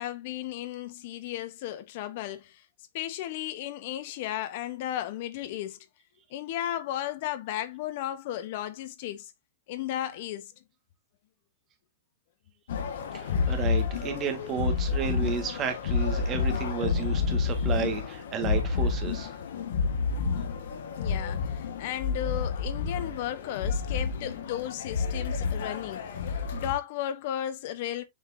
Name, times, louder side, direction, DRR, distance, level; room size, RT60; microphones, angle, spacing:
voice 1, 0.0-2.6 2.9-5.8 6.3-9.3 9.7-10.5 21.0-28.0, left 12 dB, 50° left, 1.0 m, -34 dB
sound 1, 12.7-26.7, left 5 dB, 70° left, 1.6 m, -29 dB
voice 2, 13.1-19.3, right 7 dB, 25° right, 1.8 m, -32 dB
7.3 x 4.9 x 2.8 m
hypercardioid pair, 155°, 0 cm